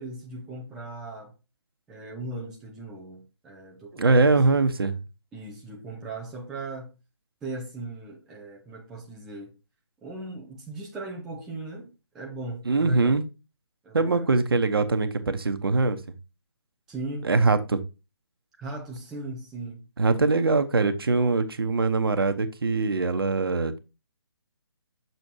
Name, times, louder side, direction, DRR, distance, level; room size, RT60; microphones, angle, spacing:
voice 1, 0.0-1.3 1.9-4.4 5.3-6.9 7.4-9.5 10.0-13.2 13.8-14.3 16.9-17.3 18.6-19.8, right 2 dB, 5° right, 0.3 m, -38 dB
voice 2, 4.0-5.0 12.7-13.2 13.9-16.0 17.2-17.8 20.0-23.8, right 3 dB, 55° right, 0.9 m, -22 dB
6.8 x 6.1 x 2.8 m
figure-of-eight pair, 140°, 14 cm